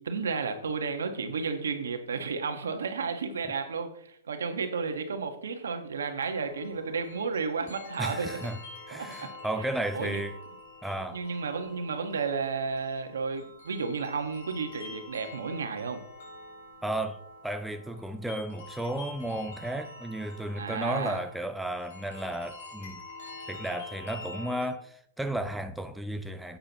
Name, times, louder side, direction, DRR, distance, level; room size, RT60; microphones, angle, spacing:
voice 1, 0.0-8.4 8.9-9.3 9.9-10.2 11.1-16.0 20.6-21.2, right 5 dB, 85° right, 1.6 m, -32 dB
sound 1, 6.2-24.7, left 2 dB, 70° left, 4.7 m, -46 dB
voice 2, 8.0-8.6 8.9-10.4 10.8-11.2 16.8-23.0 23.5-26.6, right 1 dB, 5° right, 0.5 m, -33 dB
11.0 x 8.9 x 3.1 m
hypercardioid pair, 140°, 0 cm